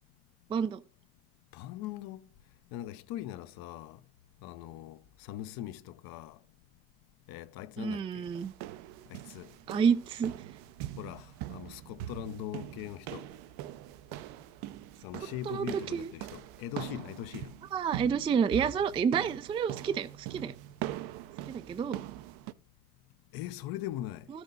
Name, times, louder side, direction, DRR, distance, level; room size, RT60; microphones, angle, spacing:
voice 1, 0.5-0.8 7.8-8.5 9.7-10.3 15.5-16.1 17.7-20.5 21.5-22.0, right 7 dB, 15° right, 0.3 m, -29 dB
voice 2, 1.5-2.3 2.7-4.0 4.4-6.4 7.3-8.2 9.1-9.5 11.0-13.3 15.0-17.5 23.3-24.3, left 13 dB, 55° left, 0.8 m, -41 dB
sound 1, 8.2-22.5, right 14 dB, 60° right, 0.6 m, -42 dB
12.5 x 6.1 x 3.8 m
hypercardioid pair, 85°, 43 cm